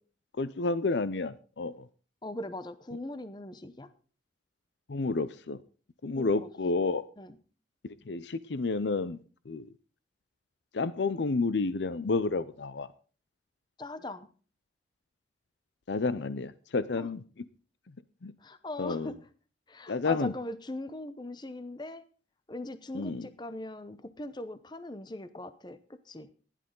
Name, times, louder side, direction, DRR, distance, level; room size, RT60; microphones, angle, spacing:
voice 1, 0.4-1.9 4.9-5.6 6.0-7.0 7.8-9.2 9.5-9.7 10.7-12.9 15.9-17.2 18.2-18.3 18.8-19.1 19.9-20.3 22.9-23.3, left 3 dB, 75° left, 15 dB, 0.6 m, -30 dB
voice 2, 2.2-3.9 6.2-6.5 7.2-7.4 13.8-14.3 17.0-17.1 18.4-19.2 19.7-22.0 22.5-26.3, left 1 dB, 25° left, 13 dB, 0.7 m, -40 dB
15.5 x 11.0 x 3.8 m, 0.38 s
head